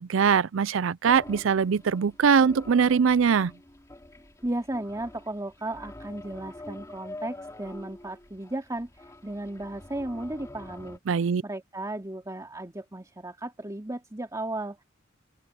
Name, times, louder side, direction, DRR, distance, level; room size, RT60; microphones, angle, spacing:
voice 1, 0.0-3.5 11.1-11.4, right 6 dB, 70° right, 0.4 m, -22 dB
sound 1, 1.1-11.0, left 1 dB, 15° left, 2.9 m, -45 dB
voice 2, 4.4-11.0 11.4-14.8, right 1 dB, 20° right, 2.5 m, -35 dB
open air
head